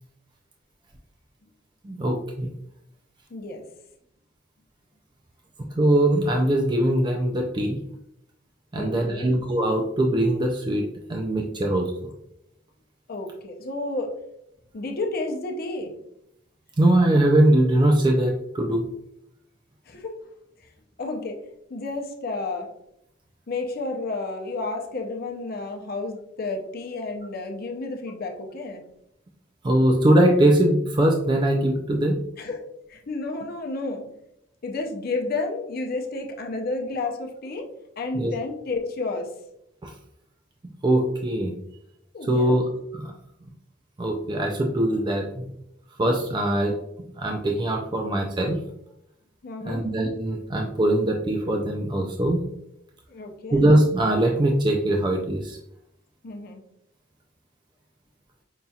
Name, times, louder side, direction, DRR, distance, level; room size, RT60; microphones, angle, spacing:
voice 1, 1.8-2.5 5.8-7.8 8.7-10.8 11.1-11.9 16.8-18.9 29.6-32.2 38.1-38.3 39.8-39.9 40.8-41.5 42.3-42.6 42.9-43.1 44.0-45.4 46.0-46.7 47.2-48.6 49.7-52.4 53.5-55.6, right 1 dB, 25° right, 2 dB, 0.4 m, -21 dB
voice 2, 3.3-3.6 8.7-9.3 13.1-14.2 14.7-16.0 19.9-20.3 21.0-21.4 21.7-22.7 23.5-28.8 32.4-34.2 34.6-39.3 42.1-42.6 49.4-49.9 53.1-53.6 56.2-56.6, left 3 dB, 50° left, 3 dB, 0.6 m, -31 dB
5.4 x 2.7 x 2.3 m, 0.78 s
head